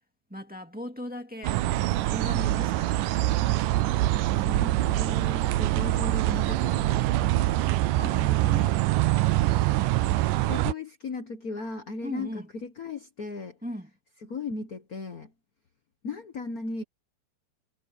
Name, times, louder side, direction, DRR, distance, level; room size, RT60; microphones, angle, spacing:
voice 1, 0.3-1.6 2.1-3.3 8.0-8.8 12.0-12.5 13.6-13.9, equal, 5° right, 1.6 m, -38 dB
sound 1, 1.4-10.7, right 16 dB, 80° right, 2.3 m, -24 dB
voice 2, 4.4-7.5 10.5-13.6 14.2-15.3 16.0-16.8, left 3 dB, 80° left, 0.8 m, -37 dB
omnidirectional pair, 3.8 m